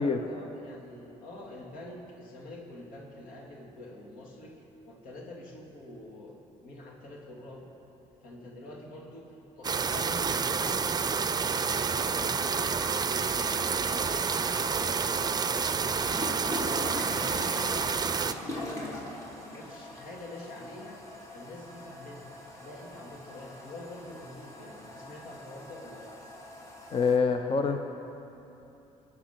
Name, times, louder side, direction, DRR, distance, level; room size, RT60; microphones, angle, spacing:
voice 1, 0.0-6.3 6.6-7.7 8.2-16.3 16.6-21.0 21.3-22.3 22.6-26.1, left 1 dB, 80° left, -1 dB, 2.8 m, -46 dB
sound 1, 9.6-18.3, right 5 dB, 30° right, 0.6 m, -29 dB
sound 2, 13.1-27.2, left 1 dB, 25° left, 3.0 m, -42 dB
voice 2, 26.9-27.8, left 5 dB, 40° left, 6 dB, 0.8 m, -25 dB
22.0 x 8.6 x 5.9 m, 2.9 s
supercardioid pair, 80°, 14 cm